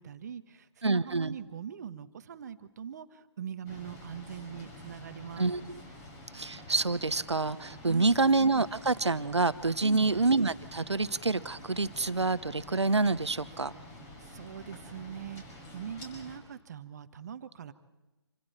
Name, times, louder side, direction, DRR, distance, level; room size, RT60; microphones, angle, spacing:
voice 1, 0.0-5.5 7.9-8.2 9.8-10.1 14.3-17.7, right 8 dB, 40° right, 11 dB, 1.4 m, -42 dB
voice 2, 0.8-1.3 5.4-5.6 6.3-13.7, right 3 dB, 80° right, 15 dB, 1.1 m, -27 dB
sound 1, 3.7-16.4, left 1 dB, 20° left, 5.4 m, -48 dB
27.0 x 26.0 x 4.4 m, 1.1 s
figure-of-eight pair, 145°, 14 cm